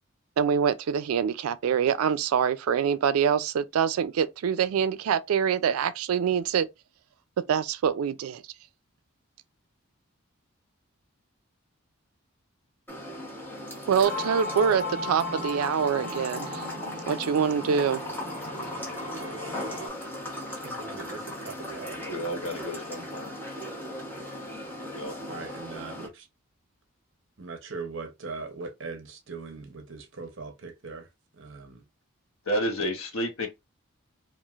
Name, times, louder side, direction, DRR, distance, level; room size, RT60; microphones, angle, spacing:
voice 1, 0.4-6.7 7.5-8.4 13.9-16.7 17.1-18.0, right 7 dB, 85° right, 0.3 m, -25 dB
sound 1, 12.9-26.1, left 1 dB, 10° left, 0.9 m, -38 dB
sound 2, 14.0-19.9, left 2 dB, 35° left, 1.5 m, -36 dB
voice 2, 20.6-22.6 25.3-26.3 27.4-31.1 31.4-31.8, right 4 dB, 60° right, 0.7 m, -40 dB
voice 3, 22.1-23.3 24.9-25.5 32.5-33.5, equal, 75° left, 0.9 m, -31 dB
3.1 x 2.4 x 2.3 m
head